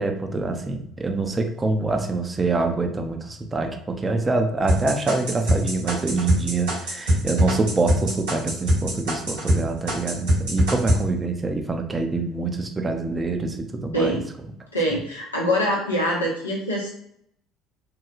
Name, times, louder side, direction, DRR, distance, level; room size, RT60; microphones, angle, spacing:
voice 1, 0.0-14.2, right 3 dB, 25° right, 4 dB, 0.5 m, -25 dB
sound 1, 4.7-9.6 9.9-11.0, equal, 75° right, 1.3 m, -21 dB
voice 2, 13.9-14.3 14.7-16.9, equal, 90° left, -3 dB, 0.7 m, -24 dB
3.0 x 2.2 x 2.4 m, 0.72 s
figure-of-eight pair, 60°, 0 cm